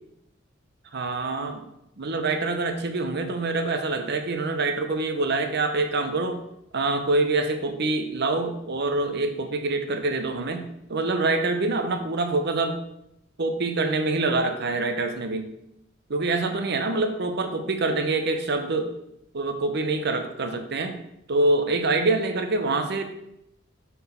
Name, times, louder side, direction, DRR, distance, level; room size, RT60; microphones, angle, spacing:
voice 1, 0.9-1.6 2.0-6.4 6.7-12.8 13.4-15.5 16.1-18.9 19.3-21.0 21.3-23.0, right 2 dB, 55° right, 6 dB, 0.8 m, -25 dB
5.5 x 4.2 x 5.7 m, 0.81 s
head